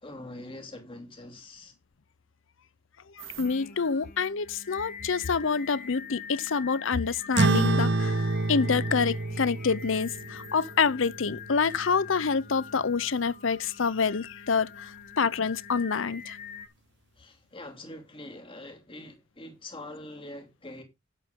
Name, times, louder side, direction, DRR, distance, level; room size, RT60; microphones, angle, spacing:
voice 1, 0.0-1.7 17.2-20.8, left 1 dB, 25° left, 2.8 m, -44 dB
voice 2, 3.2-8.2 8.5-16.4, left 5 dB, 70° left, 0.7 m, -27 dB
sound 1, 3.2-3.8 6.2-6.3 6.7-7.8 9.8-11.7 12.5-13.6 14.6-14.7, right 12 dB, 85° right, 3.4 m, -53 dB
Singing, 3.4-16.7, left 7 dB, 45° left, 1.4 m, -45 dB
sound 2, 7.4-12.2, right 2 dB, 60° right, 0.7 m, -28 dB
11.5 x 9.2 x 3.7 m
head